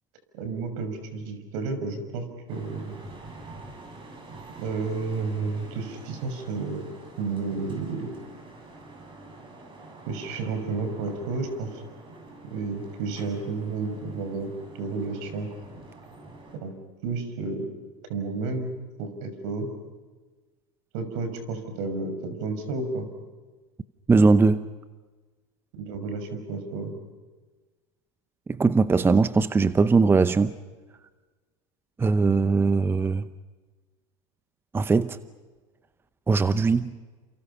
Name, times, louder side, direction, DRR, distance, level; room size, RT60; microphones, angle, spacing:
voice 1, 0.3-3.0 4.6-6.8 7.2-8.1 10.1-11.8 12.4-15.5 16.6-16.7 17.0-17.7 18.1-18.7 19.0-19.7 20.9-23.1 25.7-26.9, right 4 dB, 65° right, 6.3 m, -31 dB
sound 1, 2.5-16.6, right 2 dB, 30° right, 7.7 m, -46 dB
voice 2, 24.1-24.7 28.5-30.6 32.0-33.3 34.7-35.2 36.3-37.0, right 4 dB, 15° right, 0.8 m, -20 dB
29.5 x 28.0 x 5.7 m
supercardioid pair, 115°, 16 cm